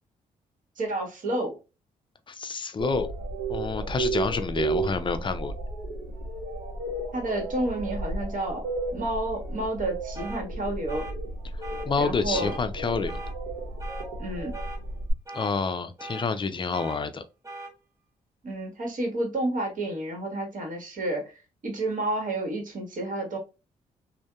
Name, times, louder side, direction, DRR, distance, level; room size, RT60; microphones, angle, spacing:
voice 1, 0.8-1.6 7.1-8.6 8.9-11.1 12.0-12.5 14.2-14.5 18.4-23.4, right 1 dB, 50° right, 1.2 m, -30 dB
voice 2, 2.3-3.1 3.5-5.5 11.5-13.2 15.3-17.2, left 4 dB, 30° left, 0.4 m, -28 dB
sound 1, 2.8-15.1, right 2 dB, 70° right, 1.0 m, -33 dB
sound 2, 10.1-10.4 10.9-11.1 11.6-11.9 12.3-12.6 13.1-13.3 13.8-14.1 14.5-14.8 15.3-15.5 16.0-16.3 16.7-17.0 17.4-17.7, right 2 dB, 20° right, 0.7 m, -40 dB
2.6 x 2.1 x 2.2 m
hypercardioid pair, 50°, 17 cm